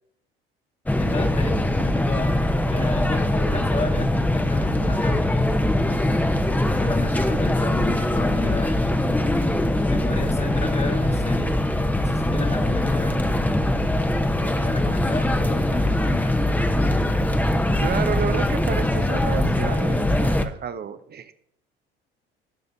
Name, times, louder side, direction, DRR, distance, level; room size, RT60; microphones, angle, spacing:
sound 1, 0.9-20.4, left 1 dB, 5° left, 0.9 m, -22 dB
voice 1, 1.0-2.3 2.7-5.4 6.8-8.8 9.9-11.5 11.9-13.3 14.3-16.3, left 3 dB, 20° left, 3 dB, 1.5 m, -32 dB
voice 2, 17.8-21.3, right 7 dB, 30° right, 11 dB, 0.7 m, -31 dB
17.0 x 6.5 x 2.7 m, 0.72 s
hypercardioid pair, 65°, 30 cm